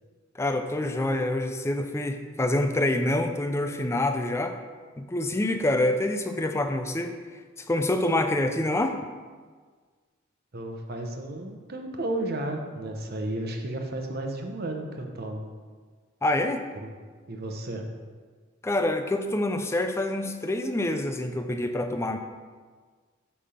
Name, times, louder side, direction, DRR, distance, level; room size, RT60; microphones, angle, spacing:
voice 1, 0.4-4.6 5.0-7.1 7.6-9.0 16.2-16.6 18.6-22.2, left 1 dB, 15° left, 6 dB, 0.4 m, -26 dB
voice 2, 10.5-15.5 16.8-16.9 17.3-17.8, right 1 dB, 50° right, 3 dB, 0.9 m, -33 dB
8.6 x 3.5 x 5.7 m, 1.5 s
head